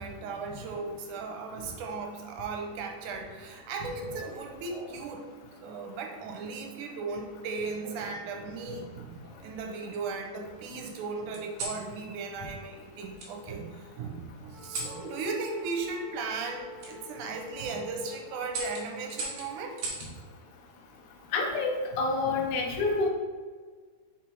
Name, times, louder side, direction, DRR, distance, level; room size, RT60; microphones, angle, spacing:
voice 1, 0.0-5.3 5.6-9.2 9.4-19.8 22.3-22.4, right 4 dB, 85° right, 3 dB, 2.3 m, -37 dB
sound 1, 4.0-5.1 6.1-6.5 7.8-8.6 9.2-10.1 11.3-11.8 13.2-13.3 14.6-15.0 16.8-16.9 17.5-17.8 18.5-20.1 21.6-22.0, right 2 dB, 60° right, 2.3 m, -40 dB
Wind instrument woodwind instrument, 14.5-19.7, left 3 dB, 35° right, 2.2 m, -49 dB
voice 2, 21.3-23.1, left 3 dB, 80° left, 2 dB, 2.3 m, -28 dB
6.0 x 4.1 x 4.6 m, 1.5 s
omnidirectional pair, 3.5 m